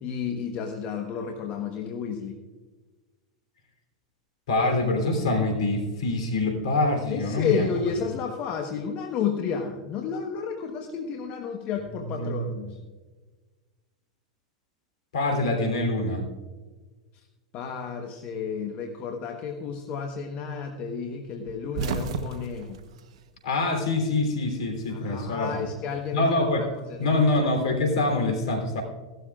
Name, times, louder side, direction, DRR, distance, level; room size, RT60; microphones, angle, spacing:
voice 1, 0.0-2.4 7.1-12.8 17.1-17.2 17.5-22.8 24.9-26.3 26.9-27.2, left 6 dB, 45° left, 3 dB, 1.2 m, -31 dB
voice 2, 4.5-7.7 12.2-12.4 15.1-16.2 23.4-25.7 26.1-26.7 27.0-28.8, left 2 dB, 75° left, 4 dB, 3.4 m, -25 dB
sound 1, 21.4-24.0 24.3-25.3 26.5-28.0, right 5 dB, 70° right, 1.0 m, -35 dB
16.5 x 12.5 x 2.4 m, 1.3 s
hypercardioid pair, 95°, 3 cm